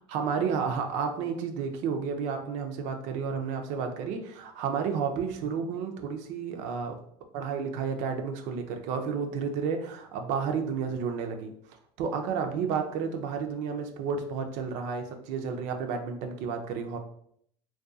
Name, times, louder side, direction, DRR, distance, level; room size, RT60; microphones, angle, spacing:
voice 1, 0.1-7.0 7.3-11.5 12.0-17.0, right 6 dB, 70° right, 5 dB, 0.4 m, -31 dB
2.6 x 2.2 x 2.3 m, 0.67 s
supercardioid pair, 90°, 13 cm